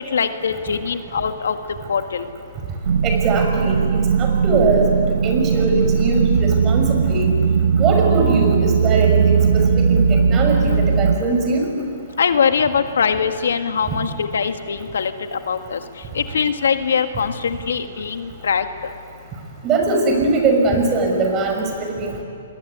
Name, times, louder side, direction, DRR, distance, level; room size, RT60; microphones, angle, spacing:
voice 1, 0.0-1.6 1.9-2.3 12.2-15.8 16.1-18.7, left 6 dB, 80° left, 8 dB, 1.8 m, -22 dB
sound 1, 2.8-11.2, right 6 dB, 75° right, 1.2 m, -18 dB
voice 2, 3.0-4.9 5.2-7.3 7.8-9.4 9.8-11.7 19.6-21.6 22.0-22.1, right 3 dB, 25° right, 3 dB, 6.1 m, -21 dB
27.0 x 22.5 x 9.6 m, 2.4 s
hypercardioid pair, 140°, 0 cm